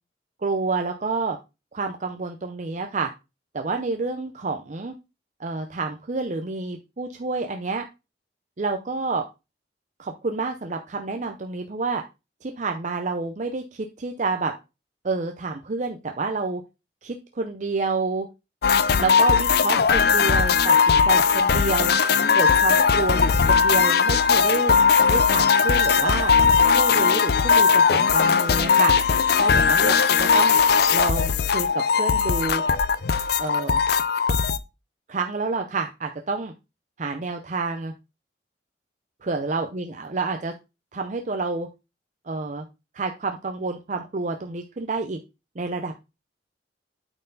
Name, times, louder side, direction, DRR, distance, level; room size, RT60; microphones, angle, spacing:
voice 1, 0.4-1.4 1.7-3.1 3.5-4.9 5.4-7.8 8.6-9.2 10.0-12.0 12.4-14.5 15.0-16.6 17.0-18.3 19.0-21.9 22.3-24.7 25.1-26.3 26.7-28.9 29.4-30.6 30.9-32.6 33.4-33.8 35.1-36.5 37.0-37.9 39.2-40.5 40.9-41.7 42.3-42.7 42.9-45.2 45.6-46.0, right 3 dB, 40° right, 5 dB, 0.6 m, -28 dB
sound 1, 18.6-34.6, left 6 dB, 60° left, 0.5 m, -19 dB
8.8 x 4.5 x 3.9 m, 0.27 s
head